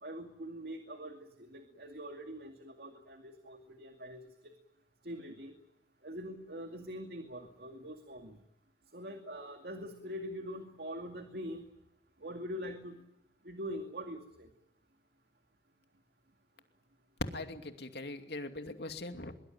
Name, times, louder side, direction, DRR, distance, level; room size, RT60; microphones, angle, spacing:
voice 1, 0.0-4.2 5.0-5.5 6.0-8.4 8.9-11.7 12.2-13.0 13.4-14.5, equal, 60° right, 6 dB, 2.3 m, -43 dB
voice 2, 17.3-19.3, left 2 dB, 60° left, 6 dB, 2.6 m, -42 dB
23.5 x 22.5 x 9.2 m, 0.90 s
head